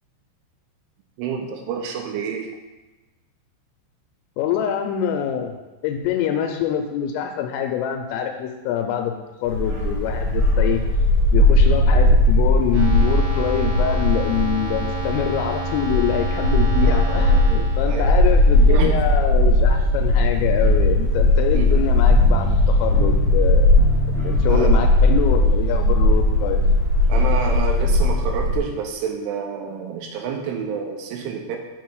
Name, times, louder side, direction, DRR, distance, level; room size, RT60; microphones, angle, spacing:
voice 1, 1.2-2.5 16.8-17.4 17.8-18.1 18.7-19.0 21.5-21.8 24.5-24.7 27.1-31.6, right 6 dB, 80° right, 3 dB, 3.1 m, -28 dB
voice 2, 4.4-9.2 9.4-10.8 11.3-23.8 24.1-26.6, left 9 dB, 85° left, 4 dB, 3.1 m, -25 dB
Bark, 9.4-28.6, left 1 dB, 40° right, 3.4 m, -18 dB
sound 1, 12.7-19.2, right 1 dB, 60° right, 3.4 m, -31 dB
sound 2, 20.4-25.9, equal, 60° left, 1.9 m, -31 dB
8.2 x 4.5 x 4.6 m, 1.1 s
omnidirectional pair, 5.9 m